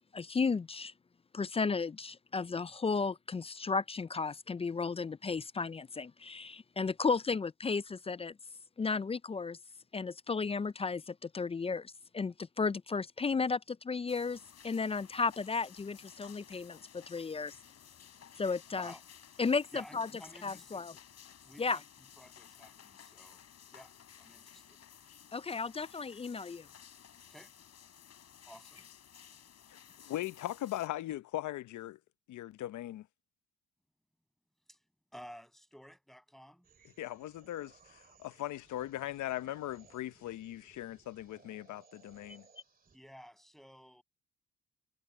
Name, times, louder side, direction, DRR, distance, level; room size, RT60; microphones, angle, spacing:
voice 1, 0.1-0.9 1.3-8.3 8.8-9.6 9.9-14.4 14.6-17.6 18.4-18.9 19.4-20.1 20.4-20.9 21.6-21.8 25.3-26.7, left 4 dB, 20° left, 0.4 m, -34 dB
sound 1, 14.1-30.9, left 8 dB, 55° left, 4.3 m, -56 dB
voice 2, 18.7-19.0 19.3-19.4 19.7-20.8 21.4-21.8 22.2-23.4 23.7-24.8 27.3-27.5 28.4-28.9 34.7-34.8 35.1-36.7 42.9-44.0, equal, ahead, 7.7 m, -53 dB
voice 3, 29.7-32.0 32.3-33.1 37.0-42.5, left 14 dB, 75° left, 0.8 m, -39 dB
sound 2, 36.6-43.0, right 2 dB, 30° right, 2.5 m, -61 dB
cardioid pair, 90°, 30 cm